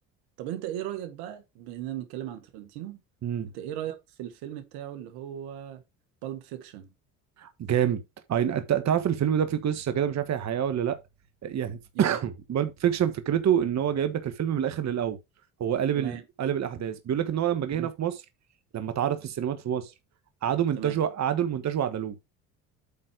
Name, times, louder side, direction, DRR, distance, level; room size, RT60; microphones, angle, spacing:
voice 1, 0.4-3.0 3.4-5.8 6.2-6.9 11.9-12.2 16.0-16.2 17.7-17.9 20.8-21.0, right 11 dB, 80° right, 1.7 m, -37 dB
voice 2, 7.4-8.0 8.3-11.0 11.4-15.2 15.6-18.1 18.7-19.9 20.4-22.1, right 9 dB, 45° right, 1.3 m, -27 dB
8.5 x 4.2 x 4.6 m
supercardioid pair, 80°, 38 cm